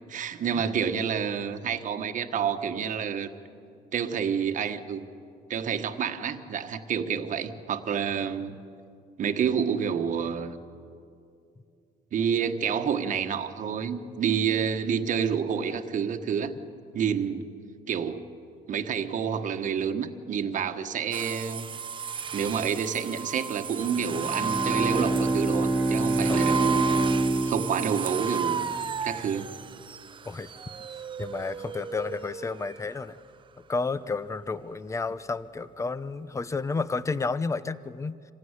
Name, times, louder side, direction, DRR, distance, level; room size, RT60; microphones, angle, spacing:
voice 1, 0.1-3.3 3.9-5.1 5.5-8.6 9.2-10.6 12.1-16.5 16.9-17.4 17.9-18.2 18.7-21.7 22.3-27.1 27.4-28.7 29.0-29.5, right 7 dB, 50° right, 6 dB, 1.4 m, -28 dB
sound 1, 21.1-32.8, right 6 dB, 30° right, 0.6 m, -34 dB
Bowed string instrument, 24.0-28.7, right 2 dB, 5° right, 2.0 m, -27 dB
voice 2, 26.3-26.7 30.2-30.5 30.9-33.2 33.7-38.2, left 4 dB, 15° left, 15 dB, 0.8 m, -31 dB
26.0 x 16.0 x 9.8 m, 2.4 s
cardioid pair, 110°, 17 cm